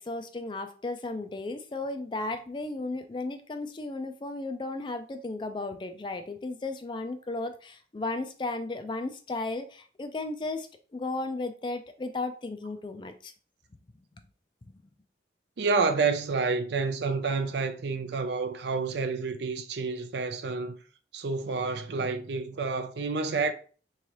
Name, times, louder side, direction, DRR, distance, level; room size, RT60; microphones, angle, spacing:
voice 1, 0.0-13.3 14.6-14.9, left 2 dB, 25° left, 0.3 m, -35 dB
voice 2, 15.6-20.7 21.1-23.5, right 4 dB, 70° right, 0.5 m, -29 dB
3.6 x 3.2 x 2.9 m
head